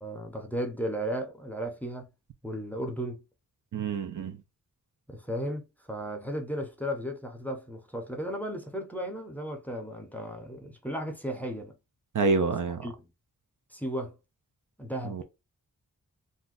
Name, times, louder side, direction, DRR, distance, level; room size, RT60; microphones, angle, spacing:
voice 1, 0.0-2.1 2.4-3.2 5.1-11.7 12.8-12.9 13.7-14.1 14.8-15.2, equal, 5° left, 0.6 m, -35 dB
voice 2, 3.7-4.4 12.1-12.9 15.0-15.2, right 4 dB, 60° right, 0.6 m, -27 dB
2.6 x 2.1 x 3.8 m
wide cardioid pair, 90°, 35 cm